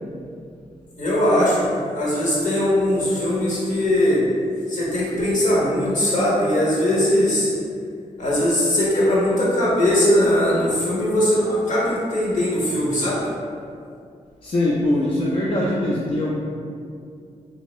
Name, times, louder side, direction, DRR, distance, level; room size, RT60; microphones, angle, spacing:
voice 1, 1.0-4.2 4.7-7.5 8.2-13.2, left 1 dB, 65° left, -7 dB, 1.2 m, -20 dB
voice 2, 14.4-16.3, left 1 dB, 45° left, -5 dB, 0.5 m, -22 dB
3.5 x 2.7 x 3.0 m, 2.3 s
cardioid pair, 95°, 13 cm